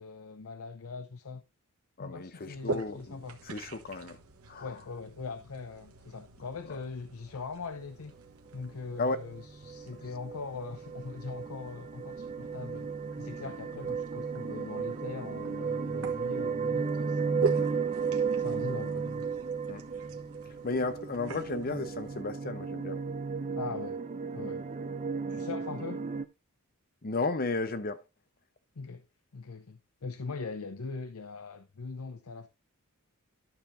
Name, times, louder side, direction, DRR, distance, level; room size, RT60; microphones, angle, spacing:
voice 1, 0.0-1.4 2.0-3.4 4.6-8.2 8.5-12.9 13.2-17.6 18.4-19.3 23.5-24.0 24.3-24.6 25.3-26.1 28.8-29.0 29.3-32.5, left 4 dB, 85° left, 0.7 m, -41 dB
voice 2, 2.0-4.2 4.5-4.7 9.0-9.2 17.6-17.8 19.7-19.8 20.6-23.0 27.0-28.0, left 3 dB, 40° left, 0.7 m, -34 dB
sound 1, 2.5-22.2, right 3 dB, 80° right, 1.2 m, -44 dB
sound 2, 8.9-26.3, right 5 dB, 30° right, 0.5 m, -34 dB
12.0 x 6.8 x 2.6 m
head